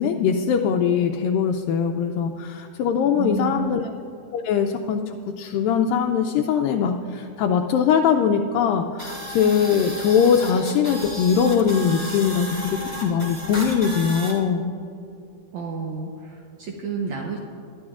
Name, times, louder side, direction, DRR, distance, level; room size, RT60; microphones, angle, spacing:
voice 1, 0.0-3.8 4.3-14.7, left 7 dB, 80° left, 3 dB, 2.1 m, -21 dB
voice 2, 3.1-3.7 15.5-17.4, right 5 dB, 75° right, 0 dB, 1.7 m, -30 dB
sound 1, 9.0-14.3, equal, 10° right, 1.1 m, -34 dB
21.5 x 11.5 x 2.4 m, 2.4 s
omnidirectional pair, 4.2 m